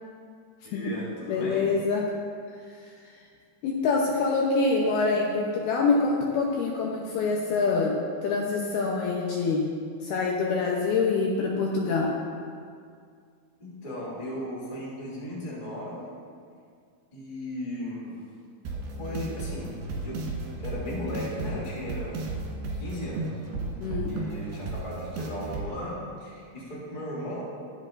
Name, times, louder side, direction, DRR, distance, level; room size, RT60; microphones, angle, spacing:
voice 1, 0.6-1.7 13.6-16.1 17.1-18.2 19.0-19.7 20.0-20.2 20.6-22.2 22.8-23.3 24.1-27.4, equal, 15° left, -6 dB, 1.7 m, -36 dB
voice 2, 1.3-2.1 2.7-2.8 3.6-8.0 8.2-9.7 10.0-12.2 23.8-24.1, left 4 dB, 75° left, -2 dB, 2.5 m, -25 dB
sound 1, 18.7-25.7, right 2 dB, 70° right, 3.2 m, -34 dB
21.0 x 7.6 x 2.6 m, 2.2 s
omnidirectional pair, 5.1 m